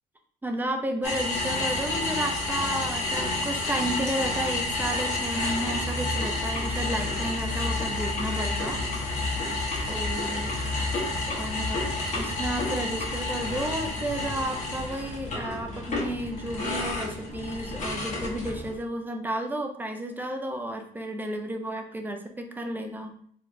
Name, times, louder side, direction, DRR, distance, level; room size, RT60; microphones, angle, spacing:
voice 1, 0.4-9.4 9.9-10.6 11.3-11.8 12.1-23.1, right 1 dB, 10° right, 4 dB, 0.6 m, -32 dB
sound 1, 1.0-18.8, left 2 dB, 45° left, 1.5 m, -30 dB
4.5 x 3.3 x 2.7 m, 0.63 s
cardioid pair, 110°, 17 cm